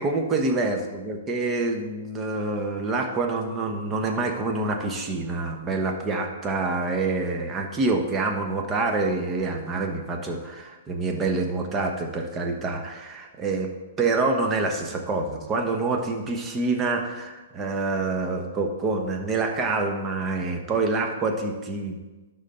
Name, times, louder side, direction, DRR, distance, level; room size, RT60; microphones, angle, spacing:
voice 1, 0.0-13.7 14.0-22.0, right 3 dB, 20° right, 3 dB, 1.2 m, -26 dB
11.5 x 4.0 x 4.4 m, 1.2 s
hypercardioid pair, 120°, 0 cm